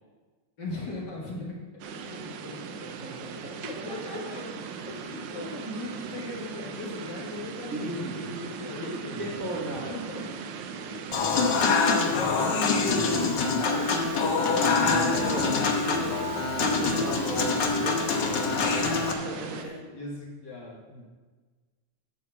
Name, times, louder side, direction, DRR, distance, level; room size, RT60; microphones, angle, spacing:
voice 1, 0.6-2.6 3.5-4.6 4.9-10.2 10.9-11.1 11.5-13.7 14.6-15.5 17.0-17.3 17.7-18.4 18.6-21.1, left 2 dB, 45° left, -4 dB, 1.8 m, -39 dB
sound 1, 1.8-19.7, right 5 dB, 80° right, 2.1 m, -39 dB
voice 2, 2.6-3.6 7.7-8.3 8.8-8.9 9.2-10.2 13.6-14.3 14.9-15.5 15.9-16.2 16.5-18.5 19.2-19.7, right 2 dB, 60° right, -3 dB, 0.8 m, -35 dB
Human voice / Acoustic guitar / Piano, 11.1-19.1, left 4 dB, 85° left, 0.9 m, -25 dB
11.5 x 4.7 x 7.0 m, 1.4 s
omnidirectional pair, 3.5 m